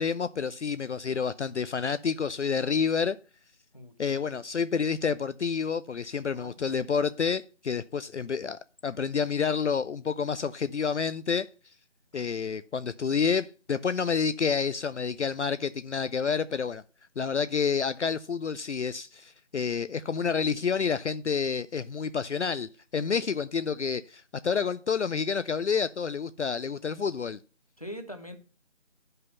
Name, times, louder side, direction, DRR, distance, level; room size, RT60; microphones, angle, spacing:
voice 1, 0.0-3.2 4.0-11.5 12.1-16.8 17.2-27.4, left 6 dB, 65° left, 0.5 m, -29 dB
voice 2, 3.7-4.2 6.3-6.6 12.1-12.4 27.8-28.4, equal, 30° left, 0.9 m, -43 dB
9.8 x 5.5 x 5.4 m
figure-of-eight pair, 180°, 37 cm